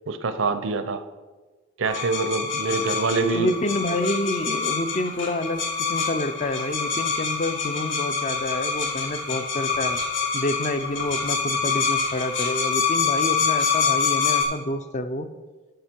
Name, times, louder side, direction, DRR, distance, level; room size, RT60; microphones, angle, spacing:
voice 1, 0.1-1.0 1.8-3.5, right 4 dB, 75° right, 11 dB, 0.6 m, -25 dB
sound 1, 1.8-14.4, left 5 dB, 65° left, 1.6 m, -26 dB
voice 2, 3.3-5.6 5.9-10.0 10.3-15.3, left 1 dB, 35° left, 9 dB, 0.5 m, -28 dB
11.5 x 5.8 x 4.5 m, 1.3 s
head